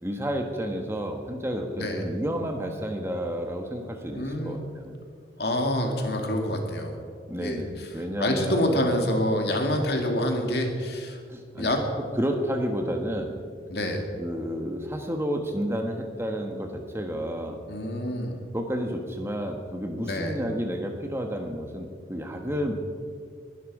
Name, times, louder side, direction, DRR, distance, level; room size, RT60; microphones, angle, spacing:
voice 1, 0.0-4.9 7.3-8.8 11.3-11.7 12.2-13.3 14.2-17.6 18.5-22.7, equal, 15° right, 4 dB, 1.3 m, -31 dB
voice 2, 4.1-4.6 5.4-7.0 7.4-7.9 8.2-11.2 11.6-11.8 13.7-14.1 17.7-18.3 20.0-20.4 22.7-22.8, left 1 dB, 60° left, 3 dB, 2.4 m, -27 dB
21.5 x 11.5 x 4.9 m, 2.1 s
head